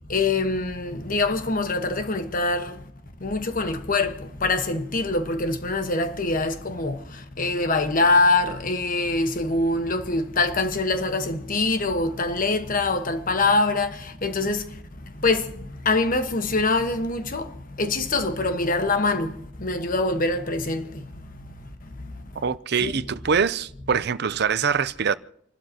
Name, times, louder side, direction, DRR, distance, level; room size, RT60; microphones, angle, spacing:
voice 1, 0.1-2.7 3.2-4.1 4.4-7.0 7.4-14.6 15.2-15.4 15.8-17.5 17.8-19.3 19.6-20.9 22.8-22.9, left 3 dB, 45° left, 1.3 m, -24 dB
voice 2, 22.4-25.1, right 6 dB, 60° right, 0.6 m, -24 dB
29.5 x 12.5 x 2.9 m
head